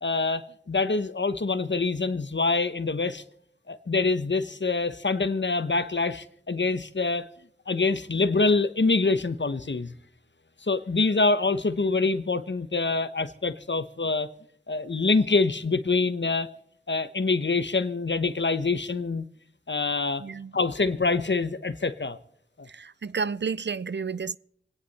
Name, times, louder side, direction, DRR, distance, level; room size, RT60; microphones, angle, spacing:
voice 1, 0.0-3.2 3.7-7.3 7.7-9.9 10.6-14.3 14.7-16.5 16.9-19.3 19.7-20.2 20.5-22.2, left 3 dB, 60° left, 1.0 m, -25 dB
voice 2, 20.2-20.5 22.7-24.4, right 5 dB, 60° right, 0.5 m, -31 dB
27.5 x 9.9 x 4.2 m
wide cardioid pair, 45°, 21 cm